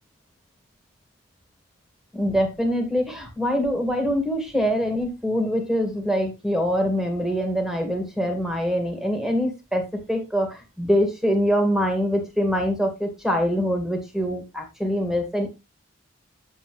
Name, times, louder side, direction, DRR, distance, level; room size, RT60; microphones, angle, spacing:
voice 1, 2.1-15.5, equal, ahead, 4 dB, 2.2 m, -24 dB
9.0 x 7.7 x 3.3 m, 0.24 s
head